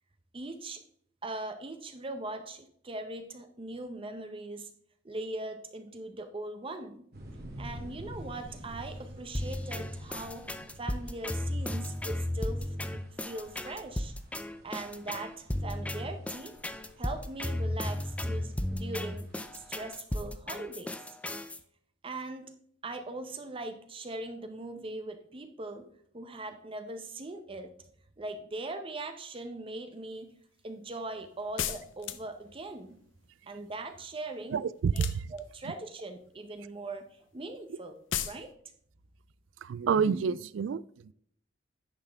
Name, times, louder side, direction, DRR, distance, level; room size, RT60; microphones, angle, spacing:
voice 1, 0.3-0.8 1.2-4.7 5.0-7.1 7.6-10.5 10.8-14.1 14.6-16.5 17.0-20.9 22.0-22.5 22.8-25.9 26.1-27.7 28.2-30.3 30.6-33.0 33.5-34.6 34.9-35.0 35.3-37.1 37.3-38.0 38.2-38.5, right 2 dB, 30° right, 0.7 m, -40 dB
sound 1, 7.1-19.9, equal, 60° right, 2.0 m, -49 dB
sound 2, 9.3-21.6, left 1 dB, 5° left, 0.5 m, -34 dB
sound 3, 31.6-32.5 34.9-35.7 38.1-38.4, left 10 dB, 80° left, 0.6 m, -34 dB
voice 2, 34.5-35.1 39.6-40.8, right 6 dB, 80° right, 0.3 m, -28 dB
10.0 x 5.8 x 3.4 m
head